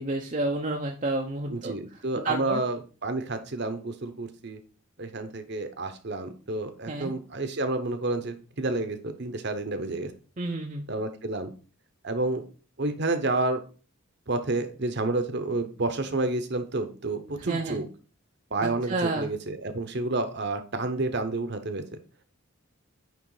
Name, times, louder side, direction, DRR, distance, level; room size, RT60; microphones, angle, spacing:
voice 1, 0.0-1.7 2.2-2.6 6.9-7.1 10.4-10.8 17.5-17.8 18.6-19.3, right 2 dB, 35° right, 1 dB, 0.6 m, -30 dB
voice 2, 1.5-4.6 5.0-10.1 10.9-11.5 12.0-12.4 12.8-13.6 14.3-17.9 18.5-21.8, right 2 dB, 50° right, 8 dB, 1.0 m, -30 dB
9.2 x 3.3 x 4.8 m, 0.37 s
head